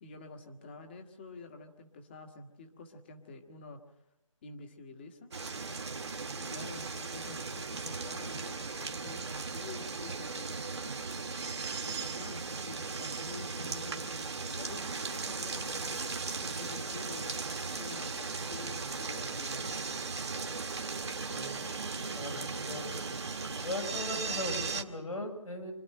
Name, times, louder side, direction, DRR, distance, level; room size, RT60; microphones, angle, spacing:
voice 1, 0.0-3.8 4.4-5.3 6.4-11.0 11.8-16.0 16.4-19.7, left 3 dB, 20° left, 5 dB, 1.5 m, -48 dB
sound 1, 5.3-24.8, right 4 dB, 55° right, 1.7 m, -37 dB
voice 2, 21.3-21.6 22.1-22.9 23.6-25.7, left 1 dB, 90° left, 2 dB, 6.6 m, -39 dB
25.5 x 11.5 x 9.0 m, 0.92 s
figure-of-eight pair, 165°, 17 cm